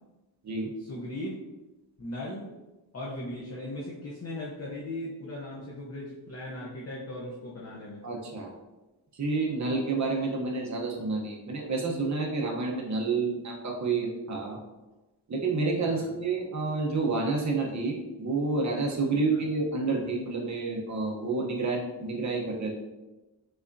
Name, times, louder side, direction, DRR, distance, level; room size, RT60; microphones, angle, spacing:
voice 1, 0.8-1.3 2.0-2.6 2.9-8.1 15.9-16.1, left 1 dB, 30° left, -4 dB, 0.7 m, -38 dB
voice 2, 8.0-8.5 9.1-14.6 15.3-22.7, right 3 dB, 35° right, 0 dB, 0.9 m, -29 dB
5.6 x 3.4 x 2.6 m, 1.1 s
wide cardioid pair, 145°, 48 cm